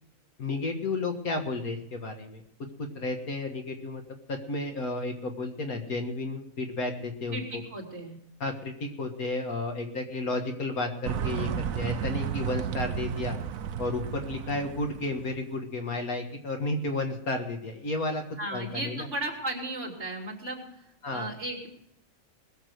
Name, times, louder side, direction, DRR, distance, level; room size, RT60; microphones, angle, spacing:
voice 1, 0.4-2.4 2.8-7.6 8.4-13.4 13.8-18.2 18.5-19.1 21.0-21.3, left 2 dB, 80° left, 4 dB, 2.1 m, -32 dB
voice 2, 7.3-8.2 18.4-21.7, right 1 dB, 50° right, -1 dB, 3.7 m, -35 dB
sound 1, 11.0-15.4, right 9 dB, 70° right, 1.1 m, -33 dB
21.0 x 7.4 x 6.3 m, 0.78 s
omnidirectional pair, 1.5 m